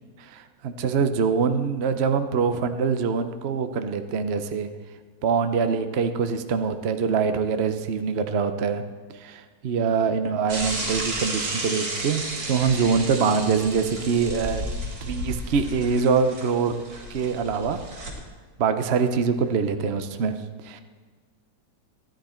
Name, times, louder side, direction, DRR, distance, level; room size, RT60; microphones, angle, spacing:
voice 1, 0.2-4.7 5.2-8.8 9.1-14.6 15.0-16.7 17.1-17.8 18.6-20.3 20.6-20.8, right 5 dB, 55° right, 8 dB, 0.7 m, -24 dB
Bicycle / Mechanisms, 10.5-18.1, right 1 dB, 80° right, 2.8 m, -33 dB
15.0 x 10.5 x 4.4 m, 1.5 s
omnidirectional pair, 1.9 m